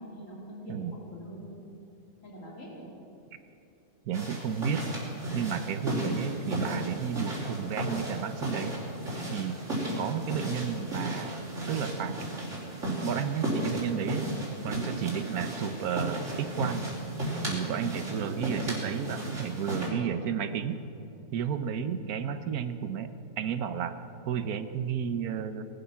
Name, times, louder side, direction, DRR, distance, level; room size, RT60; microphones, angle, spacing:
voice 1, 0.0-1.6 2.2-2.9 17.9-18.2, equal, 60° left, -3 dB, 3.7 m, -44 dB
sound 1, 4.1-19.9, right 1 dB, 55° right, 4.1 m, -34 dB
voice 2, 4.1-4.9 5.3-8.8 9.3-9.6 10.0-12.2 12.8-14.3 14.6-16.9 17.5-20.8 21.3-23.9 24.3-25.6, right 8 dB, 80° right, 10 dB, 1.3 m, -32 dB
19.5 x 12.0 x 5.8 m, 2.8 s
omnidirectional pair, 1.5 m